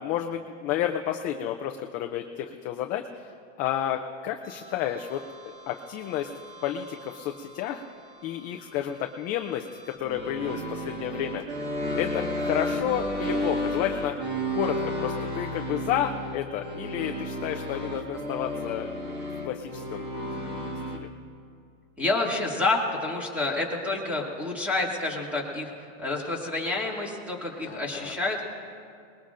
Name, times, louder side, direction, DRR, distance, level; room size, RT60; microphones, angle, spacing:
voice 1, 0.0-6.3 6.6-7.8 8.2-11.4 12.0-14.2 14.5-19.1 19.4-20.1 20.4-20.6 20.9-21.1 27.7-28.1, left 10 dB, 25° left, 4 dB, 0.4 m, -31 dB
sound 1, 4.4-21.0, equal, 25° right, 1.8 m, -33 dB
voice 2, 22.0-28.5, left 2 dB, 5° right, -2 dB, 2.2 m, -29 dB
24.0 x 20.5 x 2.5 m, 2.3 s
supercardioid pair, 145°, 37 cm